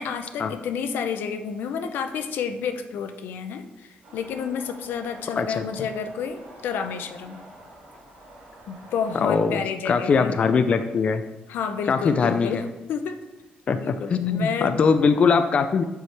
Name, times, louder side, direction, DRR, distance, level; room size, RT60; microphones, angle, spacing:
voice 1, 0.0-7.4 8.7-10.3 11.5-12.6 12.9-13.2 13.8-14.7, left 6 dB, 85° left, 8 dB, 0.6 m, -30 dB
sound 1, 4.0-9.2, right 1 dB, 75° right, 2.3 m, -47 dB
voice 2, 5.4-5.9 9.2-11.2 11.9-12.7 13.7-15.8, left 5 dB, 35° left, 8 dB, 0.3 m, -22 dB
7.6 x 4.7 x 3.3 m, 1.1 s
cardioid pair, 160°, 3 cm